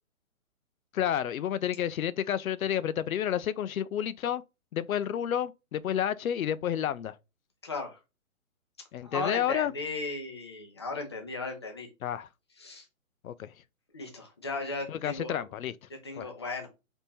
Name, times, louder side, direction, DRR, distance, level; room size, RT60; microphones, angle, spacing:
voice 1, 0.9-4.4 4.7-7.2 8.9-9.7 12.0-12.3 13.2-13.5 14.9-15.7 16.2-16.3, left 10 dB, 75° left, 0.5 m, -30 dB
voice 2, 7.6-8.0 9.0-11.9 12.6-12.9 13.9-15.4 16.0-16.7, left 3 dB, 20° left, 0.5 m, -36 dB
3.6 x 2.9 x 4.1 m
hypercardioid pair, 155°, 42 cm